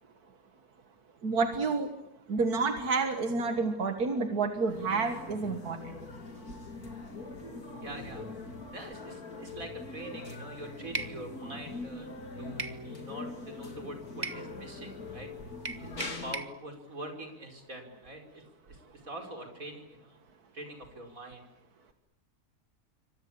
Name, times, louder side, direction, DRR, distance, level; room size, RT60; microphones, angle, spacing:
voice 1, 1.2-1.9 2.3-5.9, right 4 dB, 90° right, 6 dB, 2.2 m, -29 dB
sound 1, 4.7-16.4, left 3 dB, 80° left, 3.6 m, -43 dB
voice 2, 7.8-8.2 8.7-12.1 12.4-15.3 15.7-20.2 20.5-21.4, right 1 dB, 65° right, 4 dB, 5.7 m, -44 dB
sound 2, 10.9-11.2 12.6-12.8 14.2-14.4 15.6-16.5, right 3 dB, 30° right, 1.5 m, -36 dB
27.0 x 25.0 x 8.8 m, 0.86 s
omnidirectional pair, 1.6 m